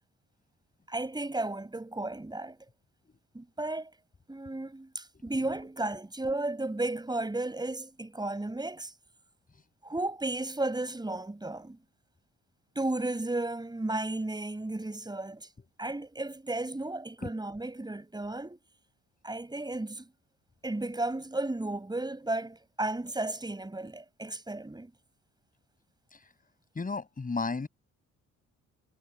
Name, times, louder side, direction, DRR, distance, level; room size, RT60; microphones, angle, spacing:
voice 1, 0.9-2.6 3.3-3.9 4.3-8.9 9.8-11.8 12.8-15.5 15.8-18.6 19.2-20.1 20.6-24.9, right 2 dB, 15° right, 7.0 m, -34 dB
voice 2, 26.8-27.7, left 4 dB, 30° left, 5.7 m, -33 dB
cardioid pair, 90°, 30 cm